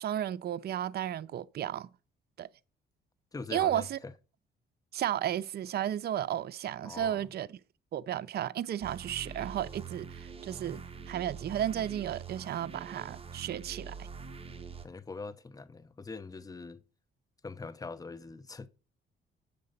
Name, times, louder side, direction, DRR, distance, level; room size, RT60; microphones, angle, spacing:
voice 1, 0.0-1.9 2.4-2.5 3.5-4.0 4.9-7.6 7.9-10.8 11.1-14.1, right 11 dB, 55° right, 0.5 m, -33 dB
voice 2, 3.3-4.1 6.8-7.3 14.8-16.8 17.4-18.7, left 4 dB, 20° left, 0.7 m, -42 dB
sound 1, 8.8-14.9, right 5 dB, 30° right, 1.1 m, -44 dB
7.6 x 6.7 x 5.3 m
cardioid pair, 90°, 20 cm